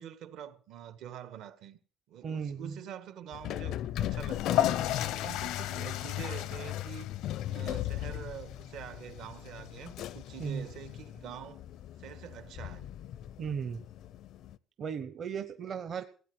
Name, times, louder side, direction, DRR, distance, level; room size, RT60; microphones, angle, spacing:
voice 1, 0.0-1.8 2.1-4.7 5.1-7.1 7.5-11.6 12.0-12.9, right 9 dB, 70° right, 1.6 m, -46 dB
voice 2, 2.2-2.8 10.4-10.6 13.4-13.8 14.8-16.0, right 6 dB, 40° right, 0.9 m, -36 dB
sound 1, 3.3-14.6, left 13 dB, 65° left, 0.6 m, -38 dB
sound 2, 4.2-11.0, left 12 dB, 90° left, 1.0 m, -35 dB
16.0 x 8.8 x 7.8 m
cardioid pair, 150°, 0 cm